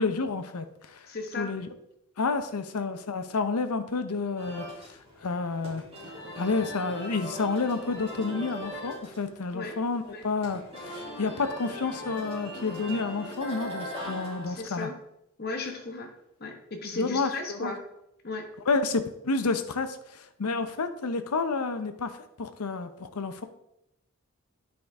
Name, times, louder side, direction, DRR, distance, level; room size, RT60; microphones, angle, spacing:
voice 1, 0.0-1.1 1.4-1.7 2.2-5.8 6.3-14.9 16.9-17.7 18.7-23.4, left 4 dB, 85° left, 9 dB, 0.7 m, -30 dB
voice 2, 1.1-1.5 9.5-9.8 10.1-10.2 14.5-15.0 15.4-16.1 16.4-17.8 18.2-18.5, left 3 dB, 45° left, 3 dB, 1.1 m, -35 dB
sound 1, 4.4-14.7, equal, 25° right, 2.6 m, -40 dB
9.4 x 5.0 x 3.5 m, 0.81 s
head